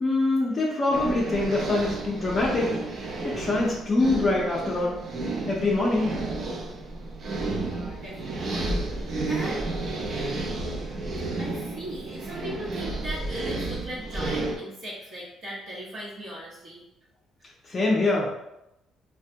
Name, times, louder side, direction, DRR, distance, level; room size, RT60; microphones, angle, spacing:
voice 1, 0.0-2.7 3.2-5.0 5.5-6.1 17.7-18.3, left 2 dB, 35° left, -4 dB, 0.5 m, -24 dB
sound 1, 0.9-14.6, right 2 dB, 45° right, 0.5 m, -32 dB
voice 2, 7.5-9.6 11.1-16.8, equal, 65° right, -9 dB, 0.9 m, -38 dB
3.1 x 2.1 x 2.7 m, 0.87 s
cardioid pair, 120°, 0 cm